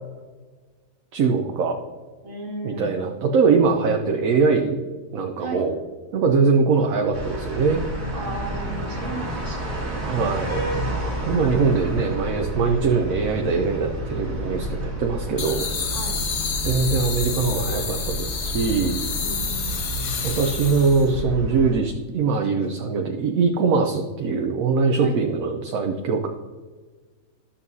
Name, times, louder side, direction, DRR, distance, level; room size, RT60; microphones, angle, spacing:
voice 1, 1.1-1.8 2.6-4.8 5.1-5.8 6.1-7.9 10.0-10.6 11.2-16.0 16.6-19.0 20.2-26.3, right 4 dB, 70° right, 3 dB, 1.1 m, -22 dB
voice 2, 2.2-3.1 5.4-5.6 8.1-10.0 11.5-12.1 15.9-16.2 19.2-19.8 25.0-25.2, right 2 dB, 50° right, 0 dB, 2.0 m, -35 dB
sound 1, 7.1-21.8, right 1 dB, 85° right, 2.5 m, -30 dB
sound 2, 15.4-21.1, left 6 dB, 55° left, 1.2 m, -30 dB
12.5 x 7.0 x 2.7 m, 1.4 s
omnidirectional pair, 1.6 m